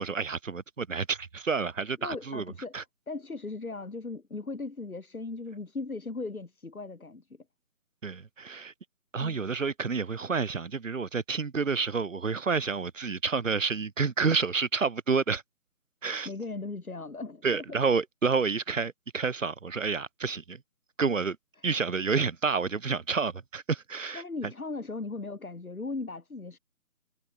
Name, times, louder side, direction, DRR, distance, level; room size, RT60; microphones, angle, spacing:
voice 1, 0.0-2.8 8.0-8.7 9.1-15.4 16.0-16.3 17.4-20.6 21.0-21.4 21.6-24.5, right 5 dB, 60° right, 1.1 m, -29 dB
voice 2, 2.0-2.7 3.1-7.4 9.2-9.4 16.2-17.6 24.1-26.6, left 3 dB, 70° left, 5.8 m, -37 dB
figure-of-eight pair, 175°, 45 cm